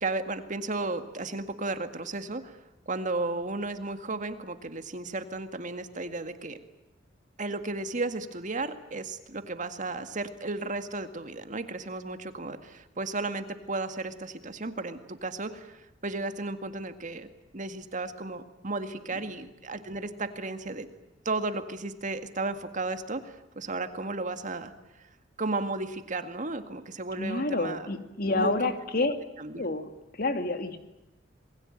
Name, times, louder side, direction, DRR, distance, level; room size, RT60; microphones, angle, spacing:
voice 1, 0.0-2.6 2.9-6.6 7.4-17.3 17.5-20.9 21.3-24.7 25.4-27.9 28.3-28.7 29.4-29.6, right 3 dB, 40° right, 8 dB, 2.0 m, -34 dB
voice 2, 27.2-29.2 29.6-29.9 30.2-30.8, left 2 dB, 50° left, 8 dB, 2.6 m, -28 dB
27.5 x 21.5 x 9.1 m, 0.94 s
head